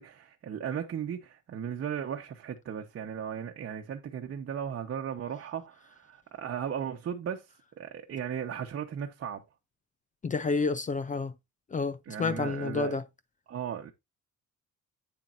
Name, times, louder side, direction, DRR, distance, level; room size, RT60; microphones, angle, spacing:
voice 1, 0.0-7.5 7.8-9.4 12.1-13.0 13.5-13.9, right 8 dB, 45° right, 1.1 m, -36 dB
voice 2, 10.2-11.3 11.7-13.0, left 4 dB, 25° left, 0.6 m, -29 dB
9.1 x 7.3 x 2.6 m
cardioid pair, 145°, 31 cm